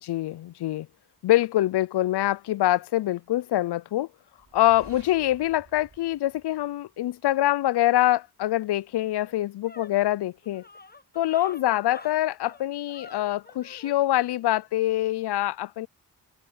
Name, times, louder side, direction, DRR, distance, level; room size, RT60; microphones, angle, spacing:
voice 1, 0.0-0.9 1.2-4.1 4.5-10.6 11.2-15.9, left 14 dB, 75° left, 0.5 m, -25 dB
sound 1, 4.4-7.2, right 4 dB, 55° right, 6.3 m, -53 dB
sound 2, 9.0-14.0, left 3 dB, 25° left, 1.1 m, -47 dB
open air
cardioid pair, 50°, 40 cm